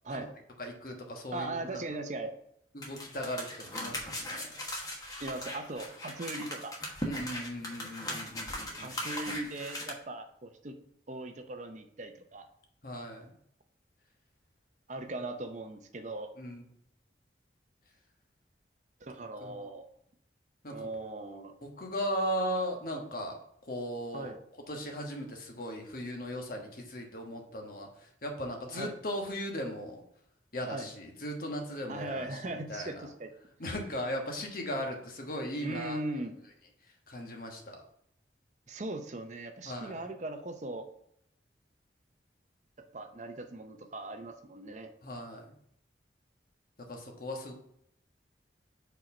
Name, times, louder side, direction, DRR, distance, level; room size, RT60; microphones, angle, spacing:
voice 1, 0.6-1.8 2.7-4.6 7.0-8.9 12.8-13.3 16.4-16.6 19.4-19.7 20.6-20.9 21.6-23.4 23.6-24.3 24.7-30.0 30.5-33.1 33.6-36.0 37.1-37.8 39.6-40.0 45.0-45.4 46.9-47.5, equal, 55° left, 2 dB, 1.3 m, -37 dB
voice 2, 1.3-2.3 5.2-6.7 8.8-10.8 11.1-12.5 14.9-16.3 19.0-19.9 20.7-21.6 24.1-24.4 28.7-28.9 30.7-30.9 31.9-33.3 35.6-36.4 38.7-40.9 42.9-44.9, right 2 dB, 40° right, 7 dB, 0.6 m, -39 dB
sound 1, 2.8-9.9, left 1 dB, 20° left, 1.2 m, -39 dB
4.9 x 4.4 x 5.3 m, 0.70 s
head